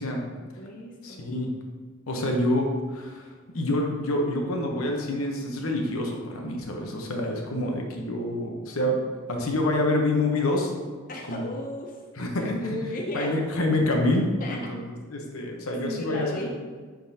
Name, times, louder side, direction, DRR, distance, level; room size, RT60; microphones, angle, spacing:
voice 1, 0.4-1.3 2.1-2.4 11.1-12.0 12.3-13.3 14.4-14.6 15.8-16.5, left 1 dB, 40° left, -1 dB, 0.7 m, -35 dB
voice 2, 1.0-1.5 2.1-2.6 2.9-10.7 11.3-11.5 12.2-12.8 13.1-16.5, left 1 dB, 85° left, 1 dB, 1.0 m, -27 dB
10.0 x 3.8 x 2.8 m, 1.5 s
head